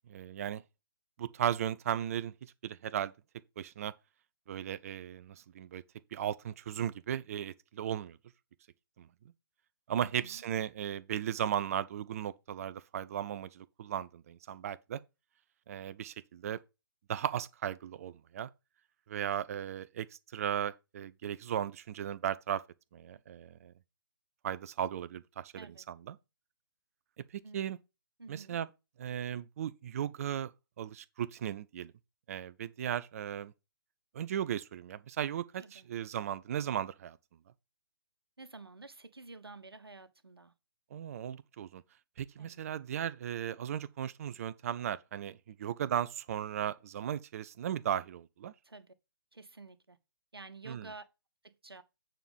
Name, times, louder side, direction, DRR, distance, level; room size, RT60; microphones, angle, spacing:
voice 1, 0.1-0.6 1.2-3.1 3.6-3.9 4.5-5.8 6.1-8.2 9.0-9.1 9.9-15.0 15.7-16.6 17.1-18.5 19.1-20.1 20.3-22.6 22.9-23.7 24.4-25.7 26.1-26.2 27.3-27.8 28.3-28.7 29.0-30.5 30.8-31.9 32.3-33.5 34.1-37.2 40.9-41.8 42.2-48.5 50.7-50.9, right 10 dB, 40° right, 0.6 m, -36 dB
voice 2, 10.0-10.4 25.5-25.9 27.4-27.7 28.2-28.6 35.6-35.9 38.4-40.5 42.4-42.7 48.6-48.9 49.3-50.0 50.3-51.0 51.4-51.8, right 3 dB, 80° right, 1.3 m, -50 dB
9.1 x 4.4 x 5.2 m
figure-of-eight pair, 135°, 12 cm